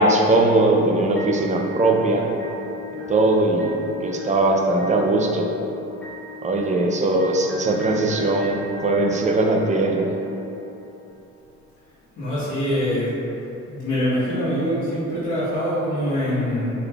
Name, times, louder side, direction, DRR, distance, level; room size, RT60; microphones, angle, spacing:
voice 1, 0.0-2.3 3.1-5.5 6.4-10.1, right 2 dB, 25° right, 1 dB, 0.4 m, -20 dB
sound 1, 1.2-11.2, left 1 dB, 5° left, 0.8 m, -38 dB
voice 2, 12.2-13.1 13.6-16.7, equal, 80° left, -11 dB, 1.2 m, -24 dB
3.7 x 3.2 x 2.3 m, 2.9 s
cardioid pair, 90°, 30 cm